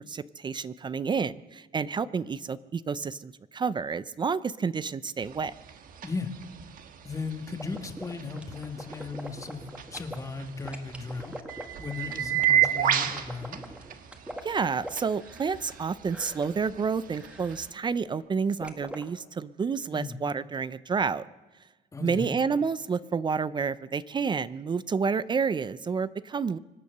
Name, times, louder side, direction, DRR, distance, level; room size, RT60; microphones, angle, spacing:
voice 1, 0.0-5.5 14.4-21.2 22.0-26.6, right 5 dB, 25° right, 17 dB, 0.5 m, -29 dB
sound 1, 5.2-17.7, right 10 dB, 55° right, 1.3 m, -33 dB
voice 2, 7.0-11.3 11.8-13.8 19.9-20.2 21.9-22.3, left 4 dB, 20° left, 6 dB, 1.5 m, -36 dB
sound 2, 7.6-10.2 10.7-15.8 16.1-16.5 17.1-17.7 18.6-19.0, right 1 dB, 5° right, 1.9 m, -42 dB
25.0 x 8.5 x 6.6 m, 1.2 s
cardioid pair, 110°, 17 cm